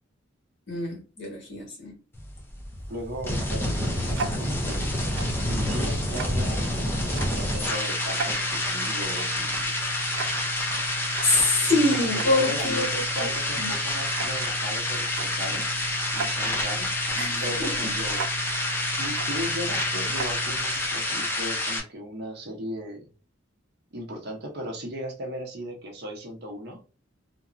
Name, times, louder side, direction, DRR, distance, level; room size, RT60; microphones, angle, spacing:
voice 1, 0.7-1.9 10.5-10.7 11.2-13.3 13.6-13.7 17.1-17.9, left 2 dB, 60° left, 1.5 m, -26 dB
sound 1, 2.1-21.8, left 1 dB, 10° left, 0.5 m, -28 dB
voice 2, 2.9-4.8 5.5-9.8 11.7-15.7 16.1-18.6 19.0-23.1 23.9-26.8, equal, 55° right, 0.8 m, -37 dB
Tick-tock, 2.9-21.2, right 4 dB, 75° right, 0.4 m, -37 dB
2.9 x 2.2 x 2.4 m
head